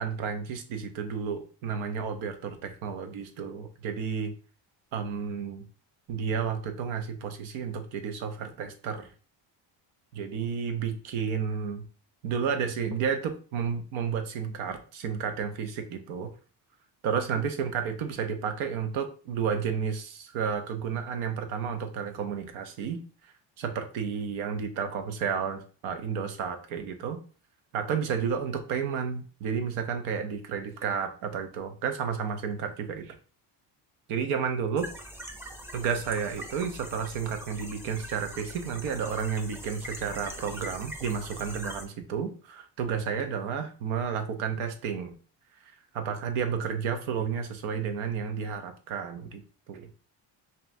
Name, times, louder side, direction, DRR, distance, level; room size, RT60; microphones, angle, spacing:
voice 1, 0.0-4.3 4.9-5.7 6.1-9.1 10.1-11.9 12.2-16.3 17.0-23.0 23.6-27.2 27.7-33.2 34.1-34.9 35.7-45.1 45.9-49.9, right 6 dB, 90° right, 7 dB, 0.9 m, -31 dB
sound 1, 34.8-41.8, equal, 5° right, 0.5 m, -42 dB
5.4 x 2.4 x 2.6 m, 0.38 s
cardioid pair, 110°, 47 cm